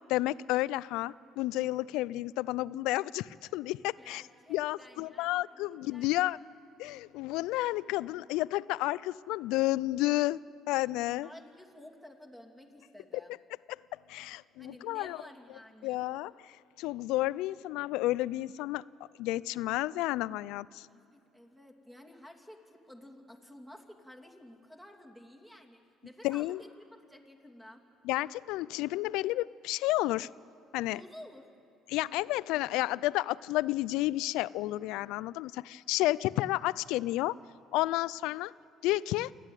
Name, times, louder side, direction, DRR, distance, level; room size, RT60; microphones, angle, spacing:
voice 1, 0.1-4.2 4.5-6.4 6.8-10.4 10.7-11.3 14.1-15.2 15.8-18.8 19.2-20.9 26.2-26.6 28.0-30.3 30.7-31.0 31.9-37.4 37.7-38.5 38.8-39.3, left 17 dB, 80° left, 20 dB, 0.4 m, -31 dB
voice 2, 4.0-6.4 11.2-13.3 14.6-16.0 20.9-27.8 30.9-31.5, left 1 dB, 5° right, 2 dB, 2.7 m, -52 dB
28.0 x 11.0 x 9.1 m, 2.7 s
cardioid pair, 95°, 0 cm